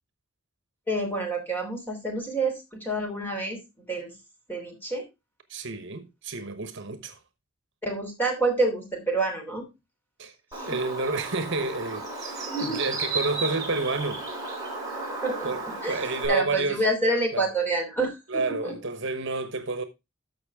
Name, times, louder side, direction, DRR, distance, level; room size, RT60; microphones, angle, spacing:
voice 1, 0.9-4.2 4.5-5.0 7.8-9.7 10.5-10.8 12.4-12.8 15.2-15.5 15.8-18.8, right 2 dB, 10° left, 3.1 m, -28 dB
voice 2, 5.5-7.2 10.2-10.3 10.6-14.3 15.4-16.8 17.3-17.5 18.3-19.8, right 3 dB, 60° right, 1.1 m, -30 dB
Bird, 10.5-16.3, right 3 dB, 15° right, 3.7 m, -34 dB
14.0 x 5.6 x 3.6 m
head